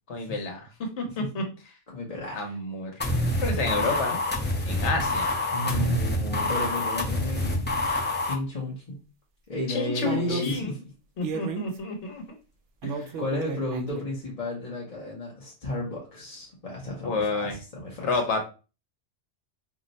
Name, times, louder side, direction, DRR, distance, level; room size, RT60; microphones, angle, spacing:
voice 1, 0.1-0.7 1.0-1.4 2.3-3.1 3.4-4.2 4.7-5.3 5.6-6.0 9.7-10.7 11.2-12.2 12.8-13.1 17.0-17.6 18.0-18.4, left 3 dB, 70° left, 3 dB, 1.1 m, -30 dB
voice 2, 1.9-2.6 5.5-7.6 8.2-9.0 9.5-10.8 13.2-18.2, left 1 dB, 35° left, -4 dB, 0.7 m, -33 dB
sound 1, 3.0-8.3, left 1 dB, 15° left, 0.4 m, -27 dB
sound 2, 6.7-7.0 8.1-8.3 10.0-10.6 11.2-11.8 12.8-14.0, right 4 dB, 75° right, 0.9 m, -33 dB
2.7 x 2.1 x 3.9 m, 0.32 s
omnidirectional pair, 1.2 m